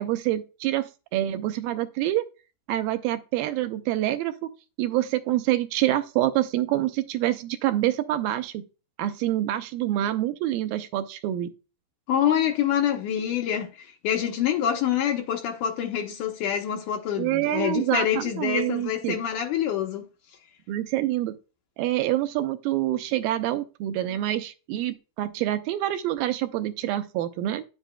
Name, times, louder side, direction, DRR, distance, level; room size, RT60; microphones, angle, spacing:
voice 1, 0.0-2.2 2.7-4.5 4.8-8.6 9.0-11.5 17.2-19.2 20.7-21.4 21.8-27.6, right 14 dB, 85° right, 2.1 m, -26 dB
voice 2, 12.1-20.1, left 9 dB, 75° left, 1.9 m, -26 dB
9.0 x 8.0 x 2.2 m
omnidirectional pair, 4.6 m